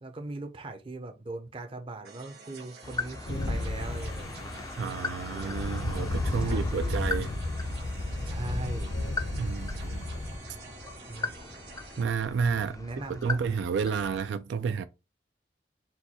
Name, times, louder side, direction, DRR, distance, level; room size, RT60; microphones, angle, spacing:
voice 1, 0.0-4.7 5.3-7.0 8.1-8.9 11.1-11.3 12.6-13.4, right 2 dB, 30° right, 0.5 m, -40 dB
sound 1, 2.0-12.0, right 4 dB, 60° right, 1.2 m, -49 dB
sound 2, 2.8-14.3, left 3 dB, 20° left, 0.3 m, -40 dB
sound 3, 3.3-10.4, left 2 dB, 65° left, 0.7 m, -33 dB
voice 2, 4.7-7.3 9.3-10.0 12.0-12.8 13.1-14.8, right 6 dB, 80° right, 0.3 m, -30 dB
4.4 x 2.3 x 4.1 m
head